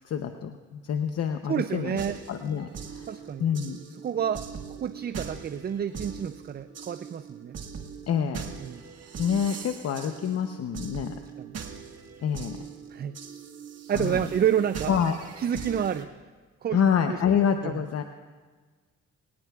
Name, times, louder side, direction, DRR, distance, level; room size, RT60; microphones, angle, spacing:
voice 1, 0.1-2.0 2.3-3.1 3.4-3.8 8.1-8.4 9.2-11.2 12.2-12.6 13.9-14.2 14.9-15.1 16.7-18.0, left 7 dB, 55° left, 6 dB, 0.8 m, -27 dB
voice 2, 1.5-2.2 3.1-3.4 4.0-7.5 8.6-8.8 11.4-11.6 12.9-13.1 13.9-14.9 15.4-16.1 16.6-16.8 17.1-17.2 17.6-17.8, right 9 dB, 35° right, 12 dB, 0.4 m, -29 dB
sound 1, 2.0-16.0, right 6 dB, 55° right, 1.6 m, -41 dB
24.0 x 18.5 x 2.4 m, 1.4 s
cardioid pair, 90°, 30 cm